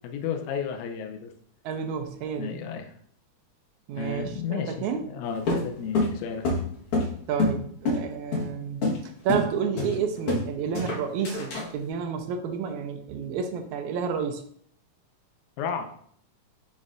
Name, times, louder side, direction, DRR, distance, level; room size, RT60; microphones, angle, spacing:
voice 1, 0.0-1.3 2.4-2.9 4.0-6.6 15.6-15.9, left 6 dB, 80° left, 5 dB, 2.0 m, -33 dB
voice 2, 1.6-2.6 3.9-5.0 7.3-14.4, right 7 dB, 85° right, 5 dB, 2.1 m, -30 dB
sound 1, 5.5-7.6 7.9-8.0 8.3-8.5 8.8-9.0 9.3-9.5 9.8-10.5 10.7-11.7, left 2 dB, 55° left, 2.1 m, -26 dB
9.6 x 4.2 x 2.5 m, 0.62 s
omnidirectional pair, 3.4 m